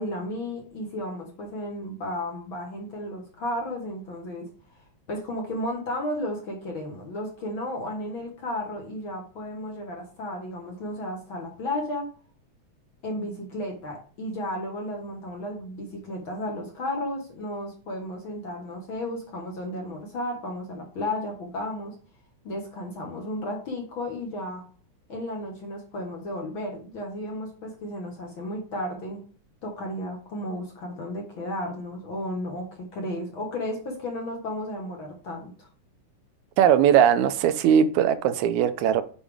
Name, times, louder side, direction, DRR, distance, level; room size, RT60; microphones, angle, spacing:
voice 1, 0.0-4.5 5.1-12.1 13.0-21.9 22.4-24.6 25.1-29.2 29.6-32.7 32.9-35.7, left 1 dB, 50° left, 1.7 m, -33 dB
voice 2, 36.6-39.0, right 9 dB, 80° right, 1.9 m, -19 dB
7.2 x 5.1 x 3.4 m
omnidirectional pair, 3.5 m